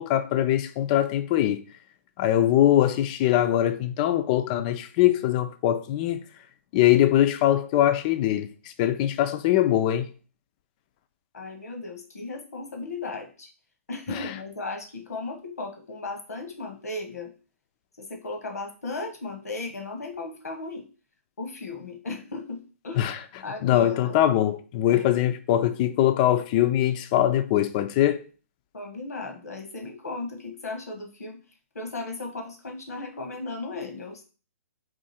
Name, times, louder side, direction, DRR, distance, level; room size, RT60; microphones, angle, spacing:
voice 1, 0.0-1.6 2.2-6.3 6.7-8.5 8.8-10.1 14.2-14.3 23.0-23.2 23.6-28.2, left 12 dB, 30° left, 0.4 m, -22 dB
voice 2, 11.3-13.5 13.9-17.3 18.0-20.8 21.4-23.1 23.4-24.2 24.9-25.0 28.7-31.4 31.7-34.2, left 3 dB, 85° left, 1.2 m, -36 dB
3.7 x 2.5 x 4.2 m
hypercardioid pair, 145°, 8 cm